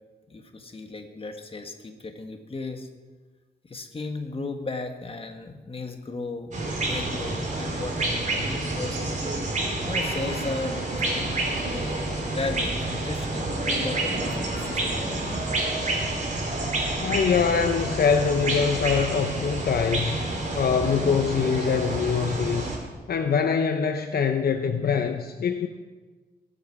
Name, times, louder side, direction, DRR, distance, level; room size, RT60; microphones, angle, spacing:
voice 1, 0.3-2.9 3.6-9.0 9.8-15.1, left 3 dB, 35° left, 5 dB, 1.7 m, -35 dB
sound 1, 6.5-22.8, right 2 dB, 45° right, 3.7 m, -28 dB
voice 2, 17.0-20.2 20.6-22.7 23.1-25.7, left 6 dB, 65° left, 6 dB, 0.8 m, -24 dB
21.5 x 8.3 x 4.8 m, 1.3 s
cardioid pair, 85°, 17 cm